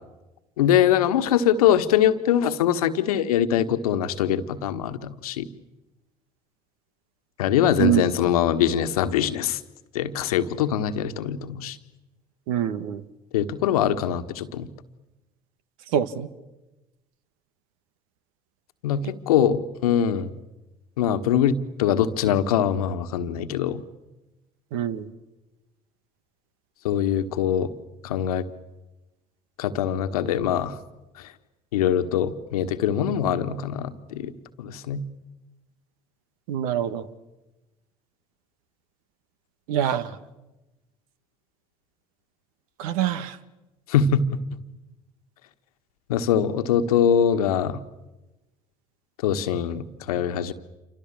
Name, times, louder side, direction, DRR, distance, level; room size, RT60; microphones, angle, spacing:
voice 1, 0.6-5.5 7.4-9.6 9.9-11.8 13.3-14.7 18.8-20.3 21.0-23.8 26.8-27.7 28.0-28.5 29.6-30.8 31.7-34.3 34.6-35.0 43.9-44.4 46.1-47.8 49.2-50.5, left 9 dB, 75° left, 10 dB, 1.5 m, -23 dB
voice 2, 12.5-13.0 15.9-16.3 19.0-19.1 24.7-25.1 36.5-37.1 39.7-40.2 42.8-43.4, right 10 dB, 65° right, 15 dB, 1.6 m, -25 dB
28.5 x 25.5 x 7.4 m, 1.0 s
figure-of-eight pair, 60°, 19 cm